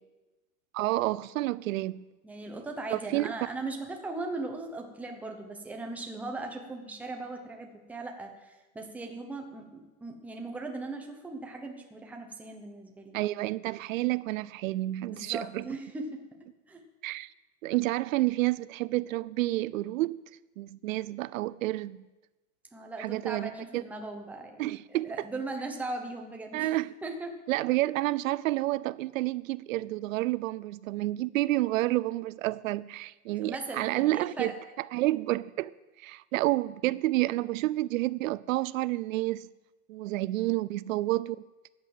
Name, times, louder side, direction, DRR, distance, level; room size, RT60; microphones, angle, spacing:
voice 1, 0.7-2.0 2.9-3.3 13.1-15.6 17.0-17.3 17.6-20.2 20.6-22.0 23.0-23.8 24.6-25.1 26.5-26.9 27.5-34.5 34.9-39.5 39.9-41.4, right 17 dB, 75° right, 0.5 m, -29 dB
voice 2, 2.2-13.2 15.1-16.2 16.7-16.8 22.7-26.7 27.0-27.3 33.4-34.6, right 2 dB, 5° right, 0.9 m, -38 dB
13.0 x 9.0 x 7.6 m
supercardioid pair, 175°, 40 cm